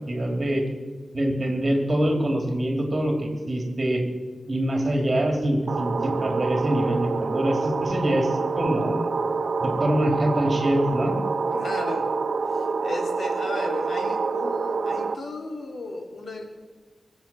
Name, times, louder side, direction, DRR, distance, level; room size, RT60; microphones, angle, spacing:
voice 1, 0.1-0.6 1.1-4.0 4.5-9.1 9.6-11.2, right 1 dB, 30° right, 3 dB, 3.4 m, -24 dB
sound 1, 5.7-15.1, right 4 dB, 60° right, 0.9 m, -27 dB
voice 2, 11.5-12.1 12.5-16.4, left 2 dB, 65° left, 3 dB, 2.6 m, -34 dB
22.0 x 8.3 x 7.4 m, 1.5 s
wide cardioid pair, 120°, 0 cm